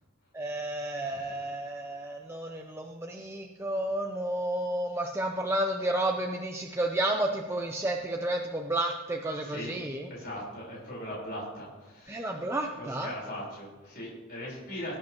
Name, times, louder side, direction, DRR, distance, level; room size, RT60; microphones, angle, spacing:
voice 1, 0.3-10.1 12.1-13.1, right 1 dB, 10° right, 1 dB, 0.6 m, -31 dB
voice 2, 0.9-1.9 9.4-9.7 10.1-12.3 12.7-15.0, left 1 dB, 45° left, -5 dB, 4.4 m, -40 dB
19.5 x 8.6 x 3.0 m, 1.2 s
head